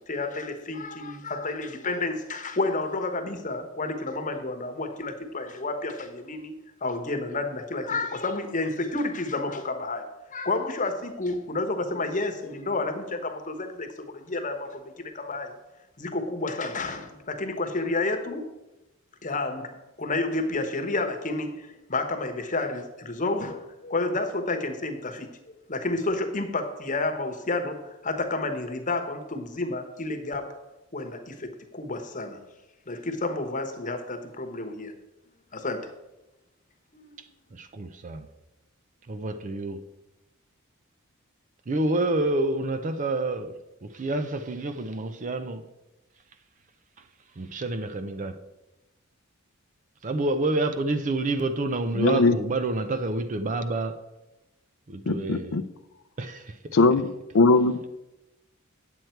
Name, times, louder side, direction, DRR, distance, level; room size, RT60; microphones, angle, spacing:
voice 1, 0.1-6.5 6.8-15.5 16.0-18.5 19.2-19.7 20.0-25.3 25.7-30.4 30.9-32.4 32.9-34.9 35.5-35.8 36.9-37.2, left 2 dB, 35° left, 1.1 m, -30 dB
voice 2, 37.5-38.3 39.1-39.8 41.7-43.5 43.8-45.6 47.4-48.4 50.0-54.0 54.9-55.6 56.2-56.6, right 2 dB, 35° right, 0.5 m, -28 dB
voice 3, 52.0-52.4 55.1-55.6 56.7-57.1 57.3-57.9, left 3 dB, 60° left, 0.5 m, -20 dB
9.3 x 7.9 x 4.5 m
head